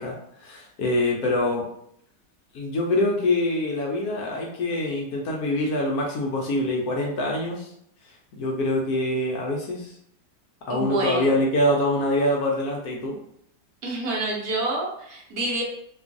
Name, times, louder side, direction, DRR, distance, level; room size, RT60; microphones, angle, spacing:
voice 1, 0.0-1.7 2.5-7.7 8.4-9.9 10.7-13.2, left 1 dB, 70° left, -1 dB, 0.9 m, -25 dB
voice 2, 10.7-11.3 13.8-15.6, right 2 dB, 65° right, -2 dB, 1.0 m, -27 dB
2.9 x 2.3 x 2.5 m, 0.70 s
omnidirectional pair, 1.9 m